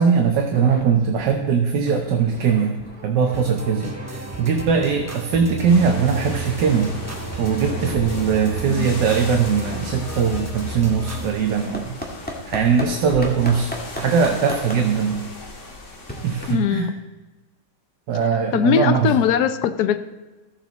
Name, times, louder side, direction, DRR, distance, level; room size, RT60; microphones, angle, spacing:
voice 1, 0.0-6.9 7.4-12.0 12.5-15.3 16.2-16.9 18.1-19.1, right 6 dB, 75° right, 3 dB, 1.5 m, -20 dB
sound 1, 0.5-0.9 1.2-1.4 1.7-5.3 5.6-12.9 13.2-16.8, left 1 dB, 5° left, 1.4 m, -38 dB
sound 2, 3.3-11.3, right 3 dB, 15° right, 0.6 m, -32 dB
sound 3, 5.6-16.5, left 2 dB, 45° left, 1.8 m, -37 dB
voice 2, 16.5-16.9 18.5-20.0, left 9 dB, 70° left, 10 dB, 1.1 m, -20 dB
14.0 x 7.1 x 4.0 m, 1.2 s
omnidirectional pair, 1.9 m